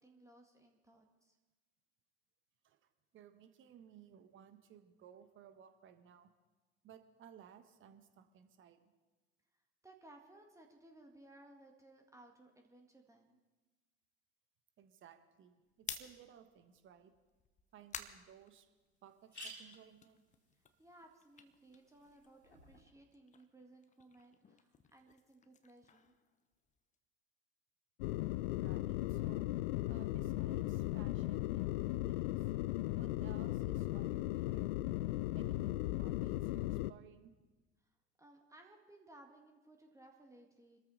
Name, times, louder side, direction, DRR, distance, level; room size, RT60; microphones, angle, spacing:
voice 1, 0.0-1.4 9.8-13.4 20.8-26.1 38.2-40.8, right 1 dB, 10° right, 2 dB, 1.9 m, -61 dB
voice 2, 2.6-6.3 6.8-8.9 14.8-17.1 17.7-18.7 19.0-20.2 28.6-29.5 29.9-32.5 33.0-34.8 35.3-37.3, right 9 dB, 35° right, 9 dB, 1.5 m, -59 dB
sound 1, 15.7-19.2 19.6-22.5 22.8-27.0, left 6 dB, 20° left, 1.1 m, -53 dB
sound 2, 17.8-17.9 18.3-18.4 18.6-18.7 19.1-22.8, equal, 80° left, 3.4 m, -56 dB
sound 3, 28.0-36.9, left 17 dB, 55° left, 0.5 m, -37 dB
25.0 x 13.5 x 4.1 m, 1.2 s
figure-of-eight pair, 70°, 33 cm